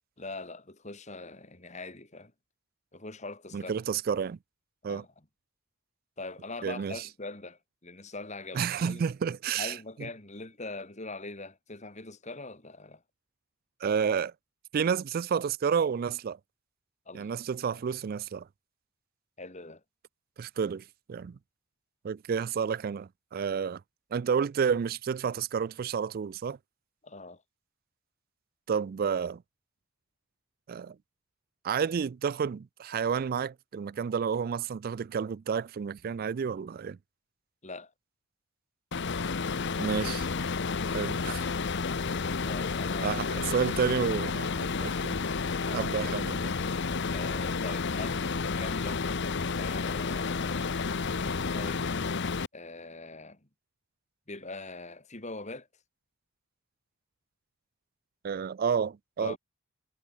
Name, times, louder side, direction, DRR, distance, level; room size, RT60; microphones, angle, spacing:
voice 1, 0.2-2.3 2.9-3.7 4.9-5.1 6.2-9.0 9.6-13.0 17.1-17.3 17.7-17.8 19.4-19.8 27.0-27.4 37.6-37.9 42.4-43.2 45.7-46.1 47.1-49.0 49.5-50.9 51.2-51.9 52.5-53.5 54.3-55.7 59.2-59.4, left 3 dB, 35° left, 3.1 m, -42 dB
voice 2, 3.5-4.4 4.8-5.0 6.6-7.0 8.5-9.7 13.8-14.3 14.7-16.4 17.1-18.5 20.4-21.4 22.0-23.8 24.1-26.6 28.7-29.4 30.7-31.0 31.6-37.0 39.8-40.3 40.9-41.4 43.0-45.2 45.7-46.5 58.2-59.4, right 6 dB, 45° right, 0.3 m, -30 dB
sound 1, 38.9-52.5, left 4 dB, 55° left, 0.8 m, -31 dB
head